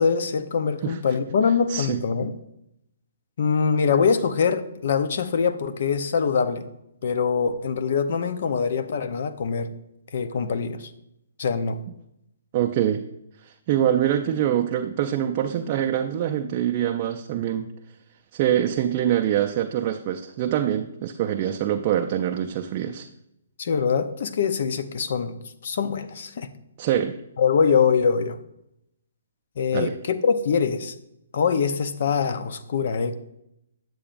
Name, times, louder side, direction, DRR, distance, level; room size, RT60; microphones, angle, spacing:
voice 1, 0.0-2.3 3.4-6.7 7.0-9.7 10.1-10.9 11.4-11.8 23.6-25.4 25.6-26.5 27.4-28.4 29.6-30.9 31.3-33.1, left 6 dB, 60° left, 11 dB, 0.7 m, -23 dB
voice 2, 1.7-2.0 12.5-13.0 13.4-17.7 18.3-23.1 26.8-27.2 29.7-30.0, right 10 dB, 35° right, 4 dB, 0.4 m, -24 dB
8.6 x 7.7 x 2.5 m, 0.82 s
hypercardioid pair, 155°, 0 cm